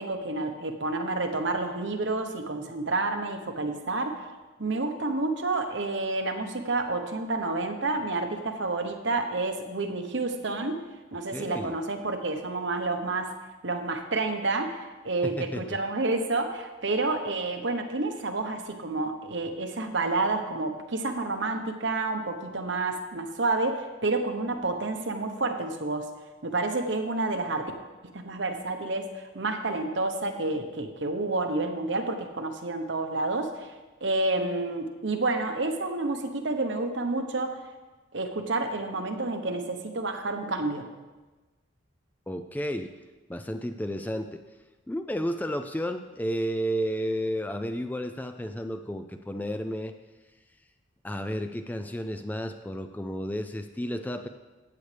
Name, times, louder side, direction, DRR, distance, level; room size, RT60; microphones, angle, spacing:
voice 1, 0.0-4.3 4.6-10.8 11.1-13.3 13.6-26.1 26.4-27.7 28.1-33.7 34.0-37.6 38.1-40.9, right 2 dB, 65° right, 5 dB, 1.0 m, -29 dB
voice 2, 11.3-11.7 15.2-15.8 42.3-42.9 43.3-44.4 44.9-49.9 51.0-54.3, equal, 10° left, 7 dB, 0.3 m, -32 dB
14.5 x 8.6 x 3.4 m, 1.2 s
head